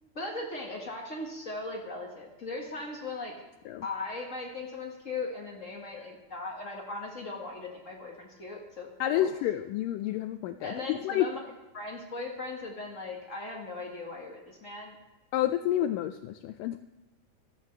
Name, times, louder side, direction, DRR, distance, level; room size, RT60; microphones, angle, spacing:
voice 1, 0.0-3.3 3.8-9.3 10.6-11.4 11.7-14.9, left 3 dB, 50° left, -1 dB, 0.9 m, -38 dB
voice 2, 9.0-11.3 15.3-16.8, left 12 dB, 85° left, 9 dB, 1.9 m, -29 dB
15.5 x 13.0 x 3.3 m, 1.2 s
omnidirectional pair, 4.3 m